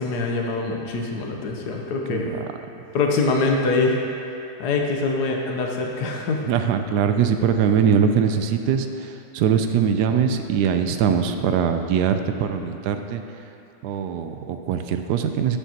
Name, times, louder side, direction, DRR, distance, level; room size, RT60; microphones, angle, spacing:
voice 1, 0.0-2.3 2.9-4.0 4.6-6.4, left 3 dB, 85° left, 1 dB, 1.4 m, -24 dB
voice 2, 2.1-2.5 6.5-13.2 13.8-15.6, right 7 dB, 90° right, 7 dB, 1.2 m, -22 dB
13.5 x 7.0 x 2.9 m, 2.8 s
omnidirectional pair, 1.7 m